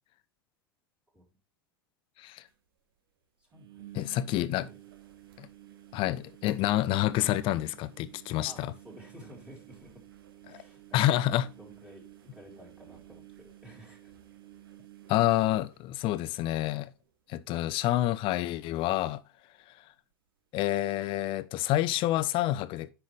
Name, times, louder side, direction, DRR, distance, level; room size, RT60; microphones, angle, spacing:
sound 1, 2.2-2.3 2.5-2.6 3.5-16.6 16.9-17.4 17.6-17.7 19.6-19.7, right 13 dB, 70° right, 1.2 m, -53 dB
voice 1, 3.4-3.9 4.3-4.8 8.4-10.1 10.5-11.0 11.6-12.1 12.3-14.1, equal, 10° right, 3.7 m, -52 dB
voice 2, 3.9-4.7 5.4-5.5 5.9-8.7 10.5-10.6 10.9-11.5 15.1-16.9 17.3-19.2 20.5-22.9, left 14 dB, 45° left, 0.7 m, -28 dB
9.4 x 5.7 x 3.3 m
hypercardioid pair, 90°, 12 cm